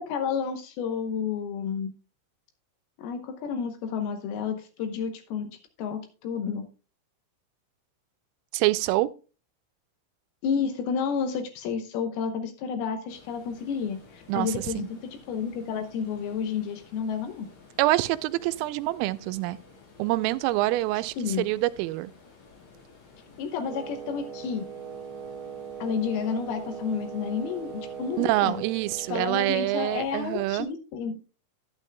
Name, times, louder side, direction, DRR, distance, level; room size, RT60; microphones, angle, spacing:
voice 1, 0.0-1.9 3.0-6.7 10.4-17.5 21.2-21.5 23.4-24.6 25.8-28.6 29.1-31.2, left 6 dB, 90° left, 2.1 m, -31 dB
voice 2, 8.5-9.1 14.3-14.9 17.8-19.6 20.0-22.1 28.2-30.7, right 17 dB, 90° right, 3.2 m, -26 dB
sound 1, 13.1-30.7, left 4 dB, 75° left, 6.9 m, -53 dB
Wind instrument woodwind instrument, 23.6-29.3, right 7 dB, 65° right, 1.9 m, -40 dB
11.5 x 10.5 x 2.2 m
omnidirectional pair, 5.8 m